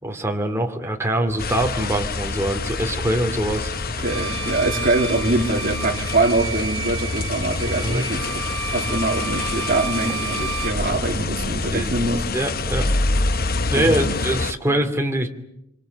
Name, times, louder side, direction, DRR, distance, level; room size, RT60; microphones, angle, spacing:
voice 1, 0.0-3.7 7.8-8.1 11.7-11.9 12.3-12.9 13.7-15.3, right 1 dB, 10° right, 2.5 m, -23 dB
Bird vocalization bird call bird song, 1.3-11.5, equal, 25° left, 4.5 m, -41 dB
sound 1, 1.4-14.5, left 3 dB, 45° left, 0.9 m, -26 dB
voice 2, 4.0-12.2 13.7-14.2 14.7-14.8, right 2 dB, 40° right, 3.1 m, -24 dB
Bowed string instrument, 4.1-10.8, right 5 dB, 80° right, 1.4 m, -32 dB
25.5 x 25.0 x 8.0 m
head